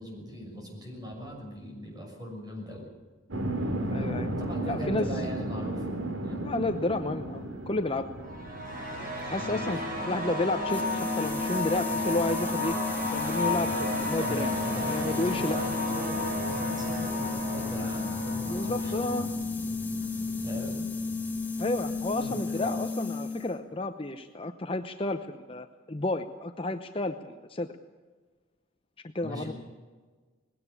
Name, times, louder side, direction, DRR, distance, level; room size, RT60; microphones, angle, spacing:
voice 1, 0.0-2.9 4.3-5.9 6.2-6.5 9.4-10.0 14.1-19.0 20.0-20.9 21.9-22.8 29.2-29.5, equal, 20° right, 1 dB, 6.3 m, -41 dB
sound 1, 3.3-22.3, right 1 dB, 80° right, 2.4 m, -38 dB
voice 2, 3.9-4.3 4.7-5.1 6.4-8.1 9.0-12.8 13.1-15.6 18.5-19.3 21.6-27.7 29.1-29.5, left 2 dB, 30° left, 7 dB, 0.8 m, -31 dB
sound 2, 8.2-19.2, left 1 dB, 45° right, 6.0 m, -33 dB
sound 3, 10.7-23.6, left 4 dB, 10° left, 3.0 m, -33 dB
20.0 x 17.0 x 8.4 m, 1.4 s
head